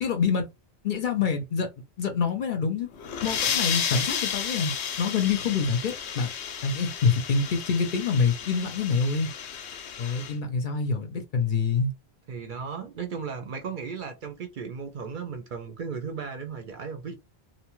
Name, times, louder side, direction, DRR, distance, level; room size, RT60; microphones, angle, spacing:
voice 1, 0.0-0.5 0.8-1.7 2.0-2.9 3.2-6.3 6.6-9.3 10.0-11.9, left 5 dB, 55° left, 0.6 m, -26 dB
sound 1, 2.9-10.3, left 7 dB, 90° left, 0.9 m, -32 dB
voice 2, 12.3-17.1, right 6 dB, 55° right, 0.7 m, -35 dB
2.7 x 2.1 x 3.0 m
omnidirectional pair, 1.1 m